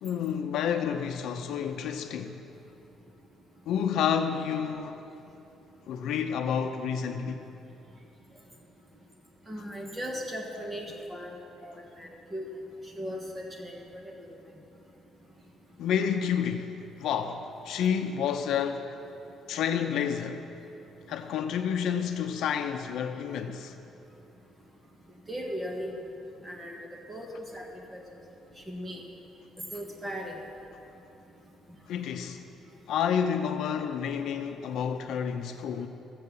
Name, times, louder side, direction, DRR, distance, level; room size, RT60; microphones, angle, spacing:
voice 1, 0.0-2.4 3.7-5.0 5.9-7.5 15.8-18.9 19.5-20.5 21.1-23.7 31.9-32.4 32.9-35.9, left 8 dB, 70° left, 0.6 m, -29 dB
voice 2, 9.5-11.4 11.6-12.5 13.0-14.4 25.3-25.9 26.4-26.8 27.1-27.6 27.9-28.0 28.7-29.0 29.7-30.4, equal, 15° right, 1.3 m, -37 dB
14.5 x 7.6 x 7.0 m
cardioid pair, 150°, 0 cm